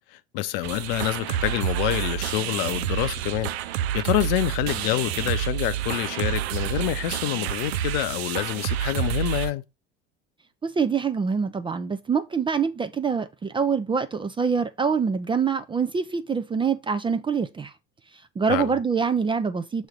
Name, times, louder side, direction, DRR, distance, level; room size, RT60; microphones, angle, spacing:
voice 1, 0.1-9.6 18.5-18.8, left 15 dB, 55° left, 0.7 m, -27 dB
sound 1, 0.6-9.5, right 12 dB, 65° right, 0.6 m, -28 dB
voice 2, 10.6-17.7 18.4-19.9, right 6 dB, 15° right, 0.5 m, -25 dB
6.4 x 3.1 x 5.1 m
figure-of-eight pair, 75°, 34 cm